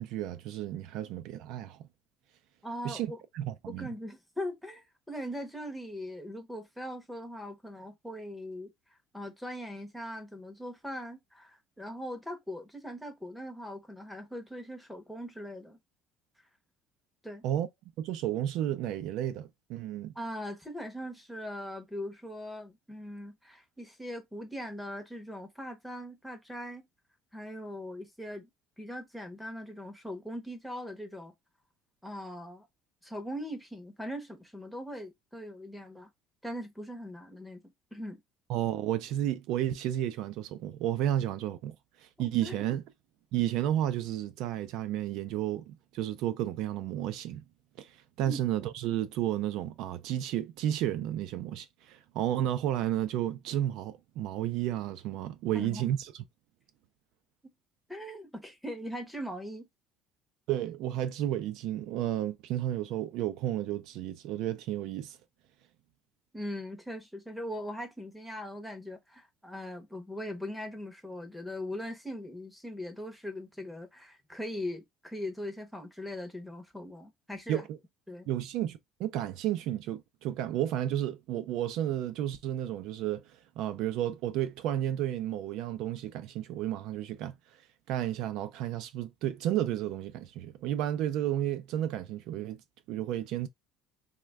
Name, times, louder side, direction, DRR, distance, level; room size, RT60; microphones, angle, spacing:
voice 1, 0.0-1.8 2.8-3.9 17.4-17.7 18.0-20.1 38.5-41.7 42.0-42.8 43.3-47.4 47.8-56.1 60.5-65.2 77.5-77.8 78.3-83.2 83.6-87.4 87.9-92.6 92.9-93.5, right 12 dB, 65° right, 0.4 m, -32 dB
voice 2, 2.6-3.2 3.7-8.7 9.1-15.8 17.2-17.4 20.2-26.8 27.3-28.5 28.8-31.3 32.0-32.7 33.0-36.1 36.4-37.6 37.9-38.2 42.2-42.6 48.2-48.4 55.5-55.9 57.9-59.7 66.3-77.7 78.1-78.3, equal, ahead, 0.7 m, -40 dB
3.2 x 2.2 x 3.3 m
cardioid pair, 160°, 0 cm